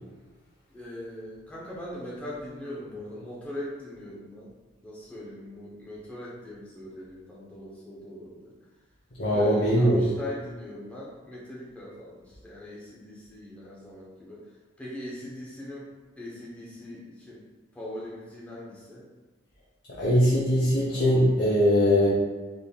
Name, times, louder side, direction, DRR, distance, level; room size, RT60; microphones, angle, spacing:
voice 1, 0.7-4.5 4.8-8.5 9.3-14.4 14.8-17.4 17.7-19.1, left 1 dB, 5° left, -6 dB, 0.7 m, -40 dB
voice 2, 9.2-10.1 19.9-22.1, equal, 60° left, -7 dB, 0.7 m, -21 dB
3.8 x 3.4 x 2.3 m, 1.3 s
head